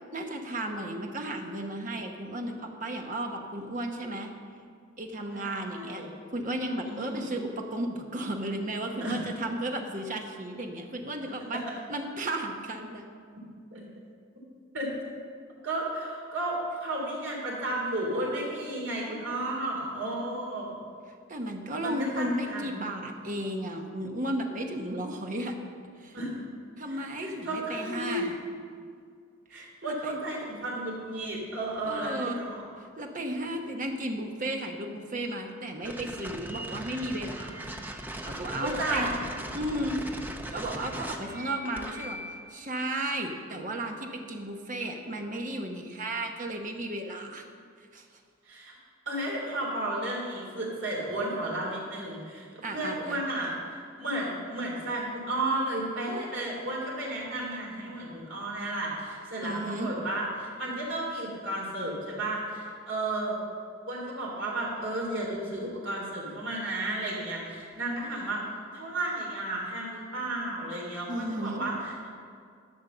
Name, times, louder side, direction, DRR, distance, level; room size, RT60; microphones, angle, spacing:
voice 1, 0.1-4.3 5.0-6.0 6.3-11.6 11.9-13.1 21.3-25.5 26.0-26.2 26.8-28.3 29.5-30.2 31.9-32.4 32.8-37.6 38.3-39.1 39.5-40.0 40.5-42.2 42.5-47.4 47.9-48.1 52.6-53.2 59.4-59.9 71.1-71.7, right 1 dB, 40° right, 3 dB, 1.1 m, -34 dB
voice 2, 5.3-6.1 6.8-7.4 8.9-9.2 13.7-13.8 14.7-14.9 15.6-20.8 21.8-22.8 26.1-26.4 26.9-28.3 29.5-32.6 37.6-37.7 38.6-39.1 48.4-48.7 49.0-63.4 63.9-68.4 68.7-72.1, right 1 dB, 65° right, -3 dB, 3.3 m, -33 dB
sound 1, 35.8-42.5, right 1 dB, 10° right, 0.6 m, -39 dB
11.5 x 6.7 x 6.8 m, 2.1 s
head